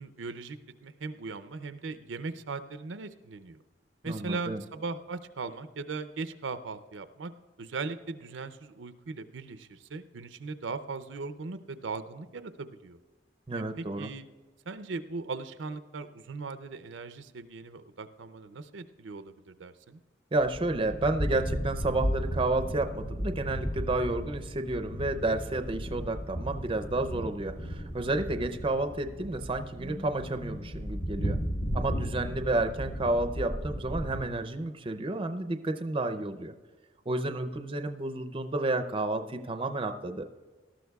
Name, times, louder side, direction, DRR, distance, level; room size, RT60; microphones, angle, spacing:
voice 1, 0.0-3.6 4.0-7.3 7.6-13.0 13.5-14.3 14.7-20.0, right 4 dB, 80° right, 11 dB, 0.6 m, -39 dB
voice 2, 4.0-4.6 13.5-14.1 20.3-31.4 31.7-36.5 37.1-40.2, right 2 dB, 30° right, 8 dB, 0.5 m, -31 dB
sound 1, 20.4-34.2, equal, 60° left, 1.4 m, -35 dB
19.0 x 13.0 x 2.3 m, 1.3 s
head